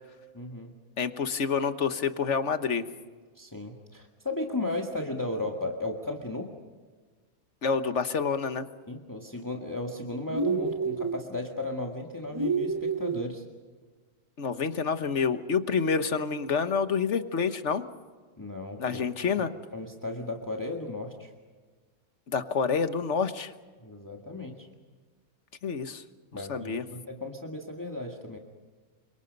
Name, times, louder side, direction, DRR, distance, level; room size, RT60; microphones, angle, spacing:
voice 1, 0.3-0.7 3.4-6.5 8.9-13.4 18.4-19.0 19.3-21.3 23.8-24.7 26.3-28.4, left 2 dB, 15° left, 1 dB, 1.9 m, -35 dB
voice 2, 1.0-2.8 7.6-8.7 14.4-17.8 18.8-19.5 22.3-23.5 25.6-26.0 26.5-26.8, left 5 dB, 75° left, 10 dB, 1.5 m, -28 dB
sound 1, 10.3-11.2 12.3-13.3, right 4 dB, 20° right, 0.9 m, -28 dB
29.0 x 25.5 x 5.4 m, 1.4 s
omnidirectional pair, 1.2 m